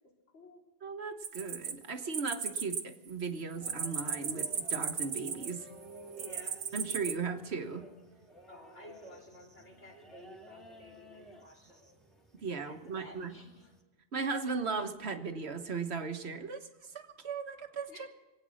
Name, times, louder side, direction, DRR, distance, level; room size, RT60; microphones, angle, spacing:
voice 1, 0.8-5.7 6.7-7.8 12.3-13.3 14.1-16.7 16.9-18.1, right 4 dB, 65° right, 6 dB, 1.5 m, -37 dB
sound 1, 1.2-2.8 3.1-5.7 6.2-7.1, right 6 dB, 85° right, 1.3 m, -36 dB
sound 2, 3.6-13.8, right 2 dB, ahead, 2.1 m, -54 dB
voice 2, 6.2-6.7 8.5-11.8 12.6-13.7 17.9-18.1, left 1 dB, 80° left, -2 dB, 4.0 m, -53 dB
25.0 x 8.9 x 6.3 m, 1.1 s
omnidirectional pair, 1.2 m